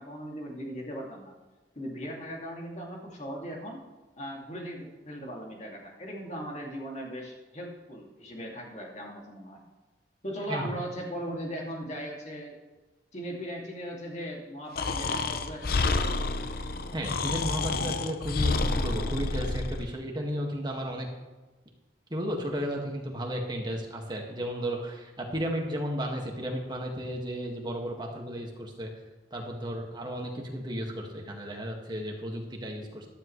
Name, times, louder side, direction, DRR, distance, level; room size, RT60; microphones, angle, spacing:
voice 1, 0.0-1.3 1.7-3.8 4.2-9.6 10.2-12.6 13.1-16.1 16.7-16.8, equal, 40° left, -1 dB, 2.5 m, -38 dB
Breathing, 14.8-19.9, left 3 dB, 55° left, 0.6 m, -29 dB
voice 2, 16.9-21.1 22.1-28.9 29.3-33.1, equal, 25° right, 0 dB, 1.9 m, -34 dB
13.5 x 12.5 x 3.3 m, 1.2 s
head